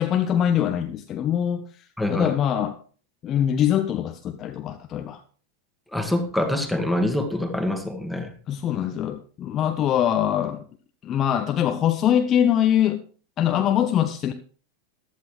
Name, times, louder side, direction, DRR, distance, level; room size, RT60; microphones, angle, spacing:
voice 1, 0.0-2.8 3.2-5.2 8.5-10.6 11.0-13.0 13.4-14.3, left 10 dB, 30° left, 7 dB, 0.8 m, -23 dB
voice 2, 2.0-2.3 5.9-8.3, left 1 dB, ahead, 4 dB, 2.0 m, -25 dB
14.5 x 11.5 x 3.2 m, 0.41 s
figure-of-eight pair, 90°, 0 cm